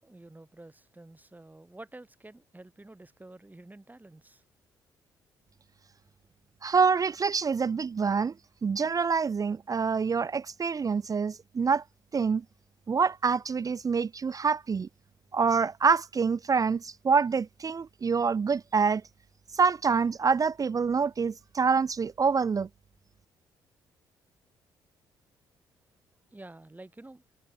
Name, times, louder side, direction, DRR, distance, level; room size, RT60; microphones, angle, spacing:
voice 1, 0.0-4.4 26.3-27.2, right 2 dB, 15° right, 6.5 m, -49 dB
voice 2, 6.6-8.3 8.6-11.8 12.1-12.4 12.9-14.9 15.3-19.0 19.5-22.7, right 5 dB, 35° right, 0.6 m, -26 dB
hypercardioid pair, 45°, 10 cm